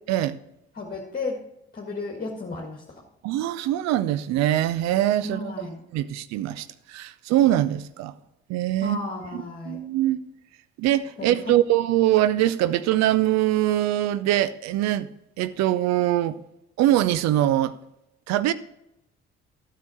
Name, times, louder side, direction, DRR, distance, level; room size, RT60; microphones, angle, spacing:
voice 1, 0.8-1.4 1.7-3.0 5.2-5.8 8.8-9.8 11.2-11.6, left 3 dB, 25° left, 1.8 m, -33 dB
voice 2, 3.2-5.5 5.9-8.1 8.5-9.0 9.3-10.2 10.8-15.1 15.4-16.4 16.8-17.7 18.3-18.5, right 13 dB, 55° right, 0.6 m, -23 dB
12.5 x 6.7 x 4.3 m
figure-of-eight pair, 45°, 32 cm